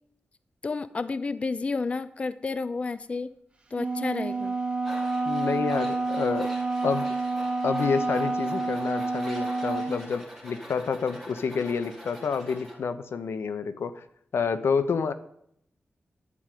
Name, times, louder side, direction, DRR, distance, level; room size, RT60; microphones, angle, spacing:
voice 1, 0.6-3.3 3.7-4.5, left 4 dB, 30° left, 14 dB, 0.4 m, -31 dB
Wind instrument woodwind instrument, 3.7-10.0, right 3 dB, 25° right, 1.4 m, -29 dB
Tools, 4.8-12.8, equal, 5° left, 3.4 m, -44 dB
voice 2, 5.3-7.1 7.6-14.0 14.3-15.1, left 5 dB, 90° left, 11 dB, 0.8 m, -29 dB
11.0 x 5.1 x 8.4 m, 0.70 s
wide cardioid pair, 155°, 4 cm